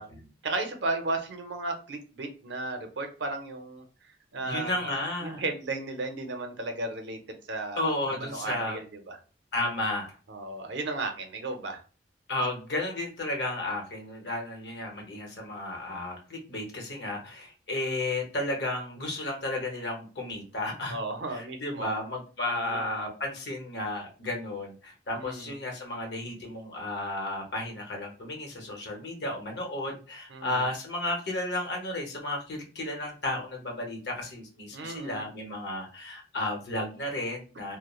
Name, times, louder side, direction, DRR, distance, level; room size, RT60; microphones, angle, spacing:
voice 1, 0.0-9.2 10.3-11.8 20.9-21.9 22.6-23.1 25.1-25.6 30.3-30.7 34.7-35.2, right 2 dB, 75° right, 5 dB, 0.6 m, -35 dB
voice 2, 4.4-5.4 7.8-8.8 9.5-10.2 12.3-21.0 21.3-37.8, left 1 dB, 65° left, 1 dB, 0.8 m, -33 dB
2.3 x 2.0 x 3.0 m, 0.36 s
head